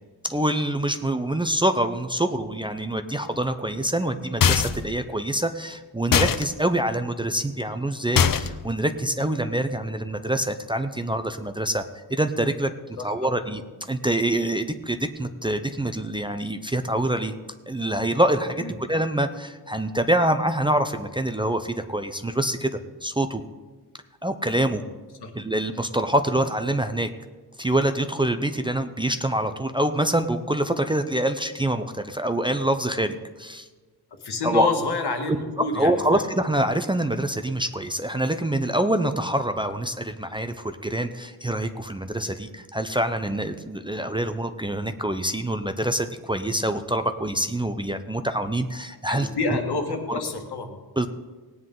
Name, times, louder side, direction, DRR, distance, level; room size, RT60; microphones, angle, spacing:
voice 1, 0.2-13.6 13.9-17.3 17.7-22.7 23.0-23.4 24.2-24.8 25.3-27.1 27.6-33.7 34.4-34.7 35.6-49.3 50.1-50.2 51.0-51.1, right 1 dB, 15° right, 7 dB, 0.4 m, -25 dB
sound 1, 4.4-4.9 6.1-6.4 8.2-8.7, left 7 dB, 60° left, 0.6 m, -20 dB
voice 2, 13.0-13.3 18.6-18.7 25.2-25.3 34.2-36.2 49.1-50.8, left 3 dB, 85° left, 3 dB, 1.6 m, -28 dB
19.0 x 9.4 x 3.7 m, 1.3 s
wide cardioid pair, 175°, 38 cm